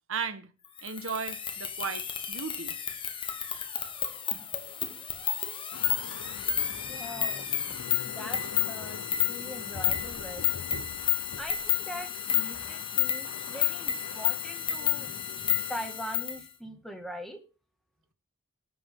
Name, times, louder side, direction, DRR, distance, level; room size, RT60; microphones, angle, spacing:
voice 1, 0.1-0.5 0.8-2.8, right 5 dB, 65° right, 1.4 m, -35 dB
sound 1, 0.8-16.4, left 10 dB, 25° left, 1.2 m, -31 dB
sound 2, 5.7-16.2, left 4 dB, 85° left, 0.8 m, -45 dB
voice 2, 6.9-7.5 8.0-10.5 11.4-17.4, equal, ahead, 2.0 m, -42 dB
19.5 x 7.7 x 3.8 m
head